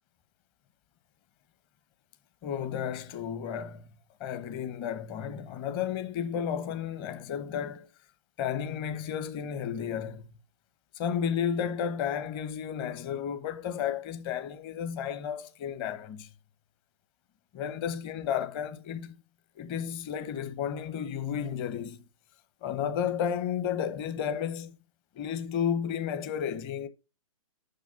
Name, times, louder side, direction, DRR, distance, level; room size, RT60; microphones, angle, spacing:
voice 1, 2.4-3.9 4.2-7.9 8.4-10.3 11.0-16.3 17.5-19.2 19.6-22.0 22.6-24.8 25.1-26.9, left 8 dB, 25° left, 0.9 m, -32 dB
6.6 x 6.0 x 6.9 m
figure-of-eight pair, 120°, 18 cm